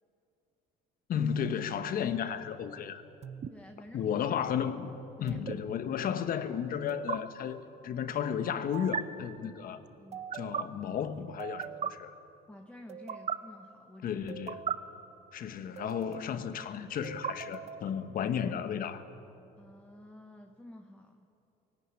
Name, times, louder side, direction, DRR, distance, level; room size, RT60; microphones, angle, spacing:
voice 1, 1.1-3.0 3.9-4.9 5.2-9.8 10.3-12.1 14.0-14.7 15.3-19.0, left 8 dB, 60° left, 1.3 m, -33 dB
sound 1, 3.2-3.5 5.3-5.5 6.9-7.2 8.7-9.0 10.1-10.6 11.4-11.9 12.9-13.4 14.3-14.7 15.8-16.3 17.0-17.9, right 8 dB, 40° right, 0.9 m, -37 dB
voice 2, 3.5-4.3 5.2-5.4 10.0-10.3 12.5-14.3 19.6-21.3, left 1 dB, 5° left, 1.2 m, -51 dB
18.0 x 17.5 x 9.9 m
cardioid pair, 110°, 17 cm